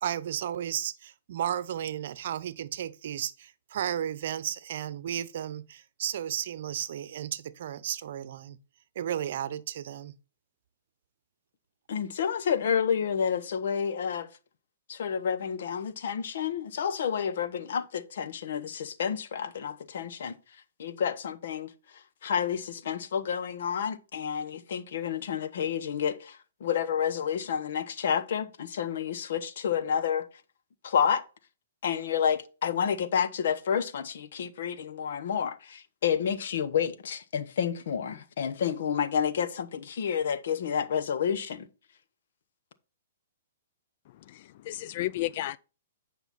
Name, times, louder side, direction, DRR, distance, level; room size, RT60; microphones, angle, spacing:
voice 1, 0.0-8.6 8.9-10.1, right 10 dB, 60° right, 0.8 m, -33 dB
voice 2, 11.9-14.3 14.9-20.4 20.8-21.7 22.2-26.4 26.6-30.3 30.8-31.2 31.8-41.7, left 7 dB, 65° left, 1.0 m, -29 dB
voice 3, 44.3-45.6, left 16 dB, 50° left, 0.3 m, -33 dB
9.2 x 5.7 x 4.1 m
hypercardioid pair, 135°, 0 cm